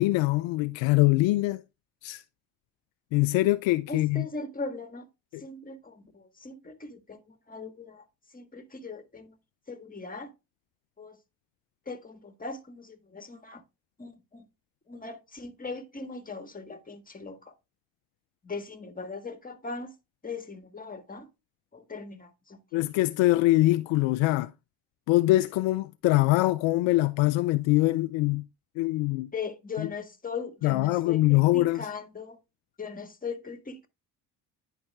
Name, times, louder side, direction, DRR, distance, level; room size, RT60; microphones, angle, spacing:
voice 1, 0.0-1.6 2.0-2.2 3.1-4.3 5.3-5.4 22.7-24.5 25.1-28.5 28.8-29.3 29.8-29.9 30.6-31.9, left 18 dB, 65° left, 0.6 m, -23 dB
voice 2, 3.9-5.0 5.4-7.2 7.5-8.0 8.3-9.3 9.7-10.3 11.0-11.2 11.9-13.6 14.0-14.4 14.9-17.5 18.4-19.9 20.2-21.3 21.7-22.6 29.3-32.4 32.8-33.9, left 4 dB, 15° left, 1.5 m, -39 dB
9.9 x 4.8 x 3.4 m
hypercardioid pair, 60°, 50 cm